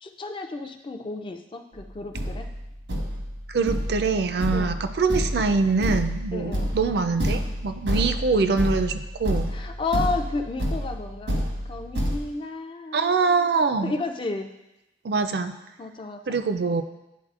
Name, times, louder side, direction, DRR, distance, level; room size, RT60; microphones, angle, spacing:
voice 1, 0.0-2.5 4.5-4.8 6.3-6.7 9.5-11.4 11.7-13.5 13.8-14.5 15.8-16.4, left 3 dB, 30° left, 6 dB, 0.3 m, -32 dB
Thump thud, 1.7-1.8 2.1-12.2, equal, 85° right, 1.2 m, -29 dB
voice 2, 3.5-9.5 12.9-13.9 15.0-15.5 16.3-16.8, right 4 dB, 60° right, 8 dB, 0.4 m, -24 dB
10.0 x 4.0 x 2.4 m, 0.93 s
head